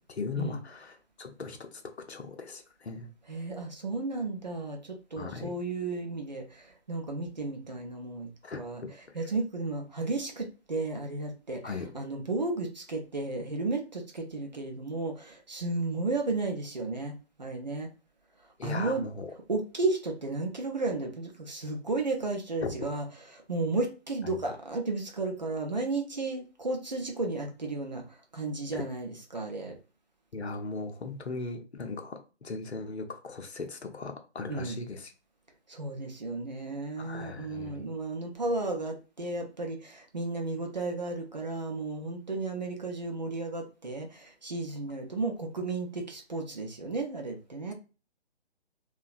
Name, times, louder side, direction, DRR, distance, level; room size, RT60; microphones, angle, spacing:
voice 1, 0.0-1.8 2.1-3.1 5.2-5.6 8.4-9.2 11.6-11.9 18.6-19.3 22.6-22.8 24.2-24.4 28.7-28.8 30.3-35.1 37.0-37.9, left 4 dB, 75° left, 0.6 m, -38 dB
voice 2, 3.3-8.3 8.6-8.8 9.1-17.9 18.6-19.0 19.5-23.1 23.3-28.0 28.3-29.8 34.5-34.8 35.7-47.7, right 3 dB, 40° right, 0.4 m, -33 dB
2.6 x 2.2 x 2.4 m
figure-of-eight pair, 145°, 33 cm